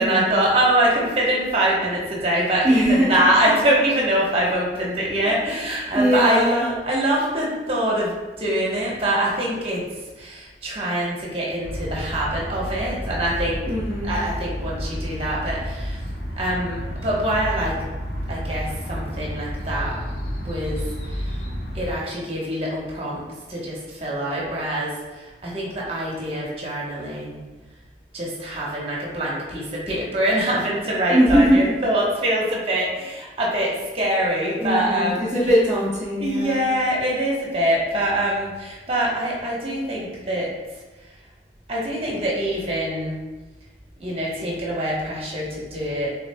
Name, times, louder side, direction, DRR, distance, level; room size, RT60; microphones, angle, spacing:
voice 1, 0.0-13.6 14.0-17.8 18.3-20.0 20.4-21.3 21.7-27.4 28.1-35.3 36.2-41.1 41.7-43.2 44.0-46.1, right 1 dB, 35° right, -4 dB, 1.1 m, -24 dB
voice 2, 2.6-3.2 5.9-6.7 13.7-14.2 31.1-31.7 34.6-36.6, equal, 15° right, -9 dB, 0.6 m, -20 dB
sound 1, 11.6-22.0, equal, 90° left, 0.8 m, -31 dB
6.6 x 3.4 x 2.2 m, 1.2 s
head